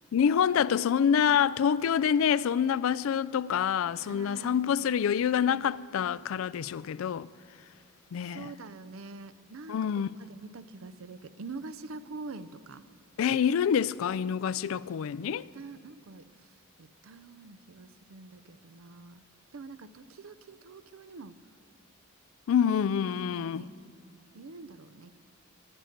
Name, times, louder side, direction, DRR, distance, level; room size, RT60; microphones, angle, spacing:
voice 1, 0.1-7.3 8.1-8.5 9.7-10.1 13.2-15.4 22.5-23.7, left 8 dB, 75° left, 0.3 m, -26 dB
voice 2, 4.0-4.8 8.2-9.8 10.2-12.8 15.2-16.5 16.8-19.2 19.5-21.4 23.3-23.7 24.3-25.2, right 3 dB, 75° right, 0.6 m, -45 dB
20.5 x 9.1 x 6.6 m
head